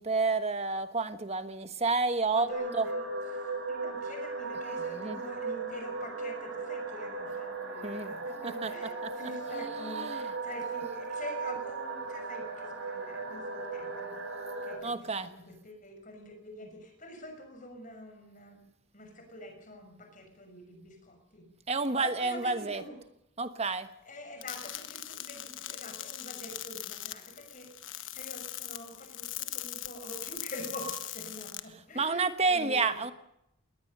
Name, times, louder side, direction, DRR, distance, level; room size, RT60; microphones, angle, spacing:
voice 1, 0.0-2.5 2.7-2.9 4.8-5.2 7.8-8.1 8.4-9.1 9.5-10.3 14.8-15.3 21.7-22.8 23.4-23.9 31.9-33.1, right 3 dB, 30° right, 10 dB, 1.2 m, -30 dB
voice 2, 2.3-14.2 14.6-18.6 18.9-21.5 22.0-23.0 24.0-33.0, left 1 dB, 40° left, 5 dB, 6.1 m, -46 dB
sound 1, 2.5-14.8, right 3 dB, 75° right, 7.7 m, -37 dB
sound 2, 24.4-31.6, left 13 dB, 70° left, 1.3 m, -40 dB
20.5 x 19.0 x 6.7 m, 0.82 s
head